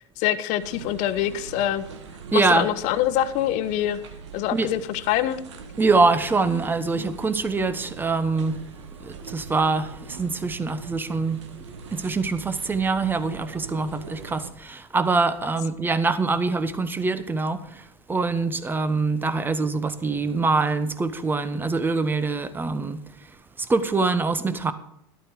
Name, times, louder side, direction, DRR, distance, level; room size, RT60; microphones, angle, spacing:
voice 1, 0.2-1.8 2.3-4.0 4.3-5.4, left 12 dB, 55° left, 1.1 m, -25 dB
sound 1, 0.6-14.5, right 5 dB, 90° right, 1.7 m, -41 dB
voice 2, 2.3-2.7 4.5-4.7 5.8-8.6 9.0-11.4 11.9-24.7, right 3 dB, 15° right, 1.1 m, -24 dB
12.5 x 12.0 x 4.8 m
supercardioid pair, 120°, 14 cm